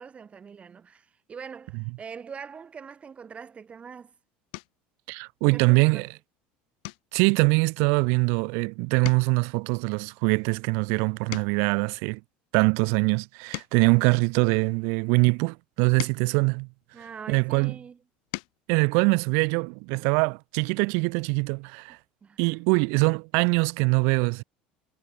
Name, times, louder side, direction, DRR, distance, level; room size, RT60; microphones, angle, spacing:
voice 1, 0.0-4.1 5.5-6.1 16.9-18.0 22.2-22.6, right 6 dB, 30° right, 1.5 m, -43 dB
sound 1, 3.6-3.9 4.5-4.9 5.4-5.8 6.1-6.3 6.8-8.6 8.9-11.8 12.4-14.9 15.6-17.4 18.0-18.7 20.1-20.2 20.5-20.7, left 29 dB, 80° left, 0.9 m, -43 dB
voice 2, 5.1-6.1 7.1-12.2 12.5-16.7 17.3-17.7 18.7-22.0 22.4-24.4, right 36 dB, 75° right, 0.4 m, -23 dB
supercardioid pair, 100°, 4 cm